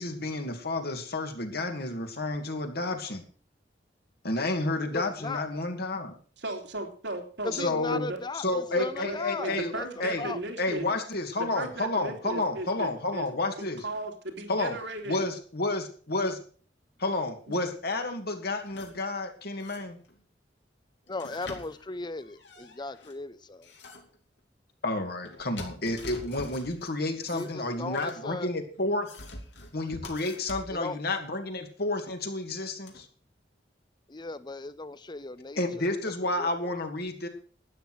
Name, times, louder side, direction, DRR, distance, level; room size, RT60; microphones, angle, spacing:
voice 1, 0.0-3.2 4.2-6.1 7.6-9.7 10.0-10.3 10.6-13.8 14.5-14.8 15.1-16.4 17.0-20.0 24.8-29.1 29.7-33.1 35.6-37.3, left 2 dB, 60° left, 5 dB, 2.4 m, -30 dB
voice 2, 4.9-5.5 7.4-9.9 10.2-10.4 21.1-23.7 27.3-28.5 30.7-31.0 34.1-36.7, left 3 dB, 25° left, 16 dB, 0.7 m, -37 dB
voice 3, 6.4-8.2 8.7-10.9 11.4-13.3 13.6-15.2, right 2 dB, 85° right, 3 dB, 3.1 m, -36 dB
sound 1, 18.6-19.1 19.6-20.2 21.1-23.1 23.6-24.2 25.2-26.9 27.2-28.2 28.8-30.8 32.1-32.2 32.9-33.0, left 2 dB, 80° left, 3.0 m, -45 dB
12.5 x 9.7 x 6.3 m, 0.43 s
head